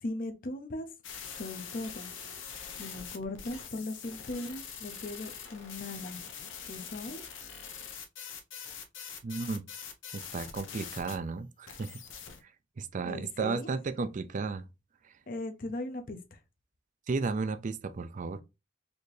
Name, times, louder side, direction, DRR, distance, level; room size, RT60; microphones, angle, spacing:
voice 1, 0.0-0.9 1.3-2.1 2.8-6.2 6.6-7.2 13.0-13.7 15.3-16.4, left 2 dB, 50° left, 0.6 m, -38 dB
sound 1, 1.0-11.2 11.7-12.4, left 7 dB, 80° left, 0.7 m, -44 dB
voice 2, 9.2-9.6 10.1-12.0 12.8-14.6 17.1-18.4, right 4 dB, 40° right, 0.4 m, -33 dB
4.2 x 2.7 x 3.1 m
head